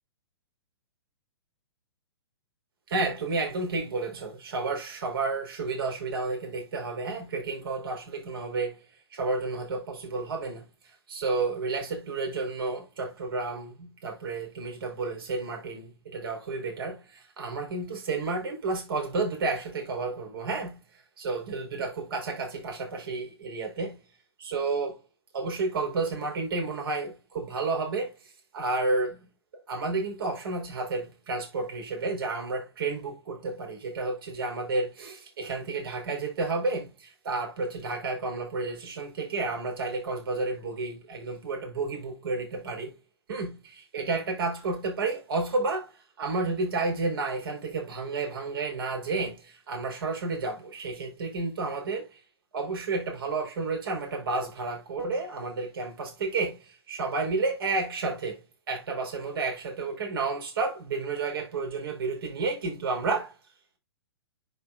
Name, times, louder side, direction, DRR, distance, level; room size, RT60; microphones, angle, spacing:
voice 1, 2.9-8.8 9.1-10.7 11.1-20.8 21.2-24.0 24.4-25.0 25.3-29.2 29.7-42.9 43.3-45.9 46.2-52.2 52.5-63.3, right 3 dB, 55° right, 5.0 m, -31 dB
10.5 x 5.1 x 2.6 m
figure-of-eight pair, 115°, 14 cm